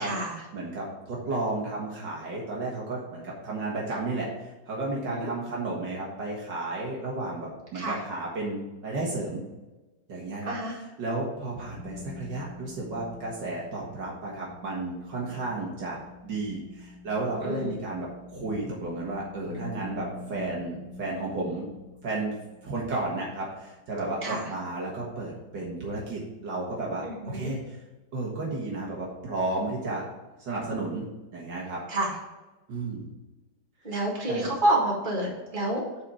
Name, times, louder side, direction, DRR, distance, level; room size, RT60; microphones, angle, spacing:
voice 1, 0.0-0.4 5.1-5.3 7.7-8.0 10.5-10.8 17.4-17.7 24.2-24.5 27.0-27.5 31.9-32.1 33.8-35.8, right 1 dB, 25° right, -4 dB, 2.3 m, -28 dB
voice 2, 0.5-9.4 10.1-10.5 11.0-16.0 16.2-21.7 22.0-22.4 22.6-27.8 28.1-30.0 30.4-31.1 31.3-31.8 32.7-33.1 34.3-34.5, right 2 dB, 65° right, -3 dB, 2.1 m, -33 dB
sound 1, 11.4-21.3, left 4 dB, 5° right, 2.4 m, -48 dB
Bass guitar, 19.5-23.2, equal, 50° left, 2.2 m, -43 dB
9.0 x 4.2 x 5.0 m, 1.1 s
omnidirectional pair, 2.1 m